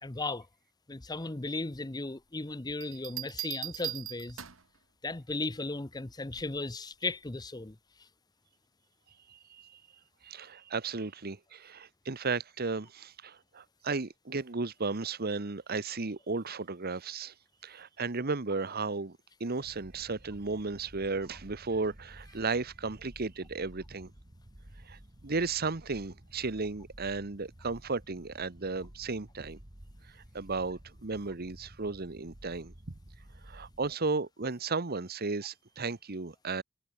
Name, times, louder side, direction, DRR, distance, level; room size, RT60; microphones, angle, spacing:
voice 1, 0.0-0.5 0.9-4.4 5.0-7.8, left 3 dB, 20° left, 0.8 m, -36 dB
Bell, 2.8-4.8 6.4-6.7, right 14 dB, 75° right, 1.9 m, -40 dB
voice 2, 9.3-9.8 10.2-17.3 17.6-24.1 24.9-25.0 25.2-29.6 30.3-32.7 33.4-36.6, right 4 dB, 50° right, 1.2 m, -34 dB
sound 1, 19.6-33.9, right 1 dB, 30° right, 2.0 m, -53 dB
head